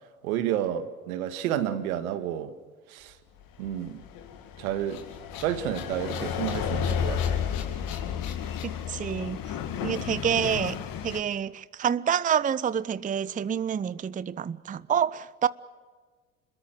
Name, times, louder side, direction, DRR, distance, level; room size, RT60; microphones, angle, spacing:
voice 1, 0.2-2.5 2.9-3.2 3.6-4.0 4.6-5.0 5.4-7.4, right 10 dB, 75° right, 2.0 m, -30 dB
sound 1, 3.0-8.6, left 8 dB, 70° left, 4.0 m, -45 dB
sound 2, 3.6-11.2, left 8 dB, 50° left, 2.4 m, -32 dB
voice 2, 8.6-9.4 9.8-10.8 11.0-15.5, right 8 dB, 20° right, 0.6 m, -27 dB
27.5 x 22.0 x 7.7 m
hypercardioid pair, 70°, 42 cm